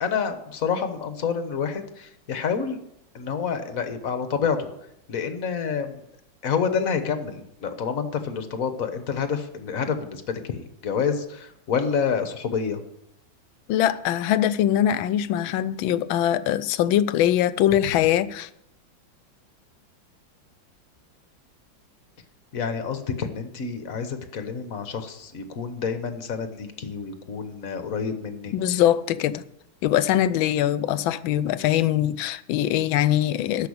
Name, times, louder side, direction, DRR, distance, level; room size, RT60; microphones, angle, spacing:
voice 1, 0.0-2.8 3.1-4.7 5.1-6.0 6.4-12.8 22.5-28.8, left 6 dB, 50° left, 1.4 m, -28 dB
voice 2, 13.7-18.5 28.5-29.4 29.8-33.7, left 11 dB, 90° left, 1.4 m, -22 dB
12.5 x 5.5 x 8.6 m
omnidirectional pair, 2.1 m